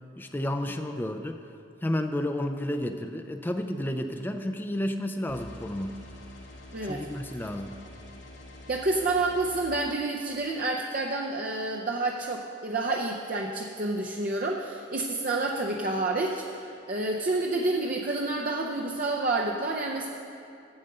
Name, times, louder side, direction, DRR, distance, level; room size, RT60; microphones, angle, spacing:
voice 1, 0.2-1.4 1.8-6.0 6.8-7.8, left 1 dB, 10° left, 6 dB, 0.4 m, -31 dB
sound 1, 5.3-9.7, left 1 dB, 75° left, 2.5 m, -46 dB
voice 2, 6.7-7.0 8.7-20.1, right 2 dB, 45° right, -1 dB, 0.6 m, -29 dB
8.9 x 7.9 x 6.6 m, 2.6 s
head